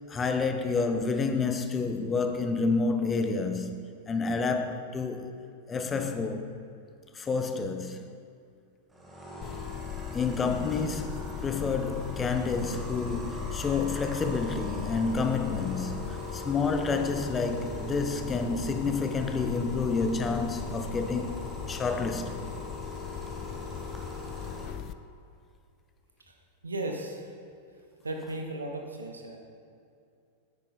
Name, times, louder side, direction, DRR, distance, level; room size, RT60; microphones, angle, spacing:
voice 1, 0.1-3.7 4.1-5.3 5.7-6.5 7.1-8.0 10.1-21.4 21.7-22.4, left 4 dB, 20° left, 0.8 m, -29 dB
sound 1, 8.9-24.7, left 2 dB, 10° right, 1.9 m, -40 dB
sound 2, 9.4-24.9, left 11 dB, 35° left, 0.4 m, -40 dB
voice 2, 26.6-27.2 28.0-29.4, right 1 dB, 80° right, 0.9 m, -35 dB
10.0 x 8.9 x 4.2 m
figure-of-eight pair, 90°, 0 cm